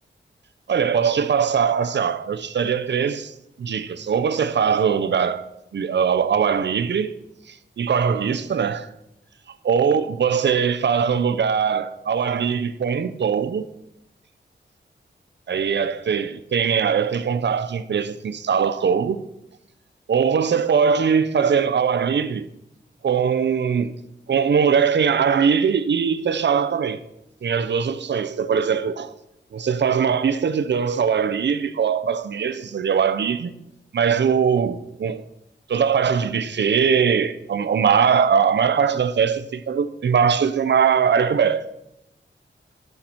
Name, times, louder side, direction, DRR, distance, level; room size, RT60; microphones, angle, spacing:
voice 1, 0.7-7.1 7.5-8.9 9.6-13.7 15.5-19.2 20.1-22.5 23.0-24.0 24.3-27.0 27.4-29.1 29.5-33.5 33.9-35.2 35.7-41.7, right 7 dB, 65° right, 0.6 m, -21 dB
13.0 x 5.9 x 4.3 m
wide cardioid pair, 135°, 20 cm